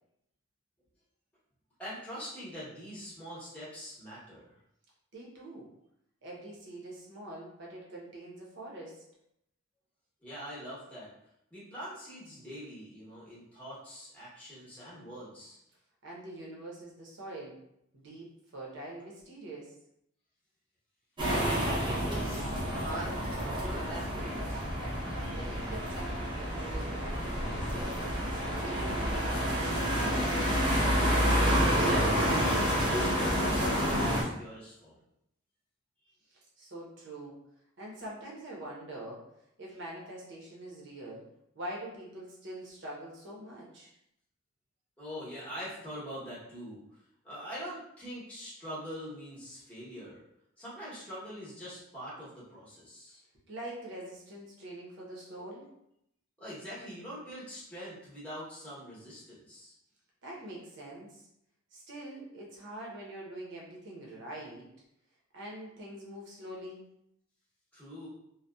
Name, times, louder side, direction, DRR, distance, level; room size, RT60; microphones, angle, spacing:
voice 1, 1.8-4.6 10.2-11.1 11.5-15.6 21.3-24.6 31.8-35.0 45.0-46.8 47.2-50.2 50.6-53.2 56.4-59.7 67.7-68.1, equal, 5° left, -8 dB, 0.8 m, -43 dB
voice 2, 5.1-5.7 6.2-9.0 16.0-17.6 17.9-19.7 25.1-28.2 28.6-30.3 36.3-37.4 37.8-39.2 39.6-41.3 41.5-43.9 53.5-55.7 60.2-61.2 61.7-64.7 65.3-66.8, right 1 dB, 60° right, -3 dB, 0.7 m, -44 dB
sound 1, 21.2-34.2, equal, 25° right, 0.6 m, -29 dB
2.6 x 2.2 x 2.2 m, 0.78 s
head